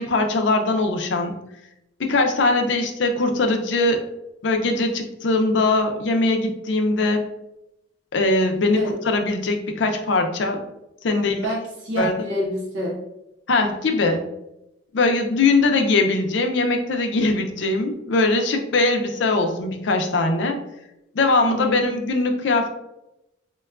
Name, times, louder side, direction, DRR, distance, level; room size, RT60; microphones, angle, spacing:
voice 1, 0.0-1.4 2.0-4.0 4.4-7.2 8.1-10.6 11.0-11.5 12.0-12.1 13.5-14.2 14.9-20.6 21.1-22.7, left 2 dB, 75° left, 4 dB, 0.5 m, -21 dB
voice 2, 11.1-13.0 21.4-21.8, equal, 70° right, -4 dB, 0.8 m, -27 dB
4.5 x 2.2 x 2.3 m, 0.87 s
head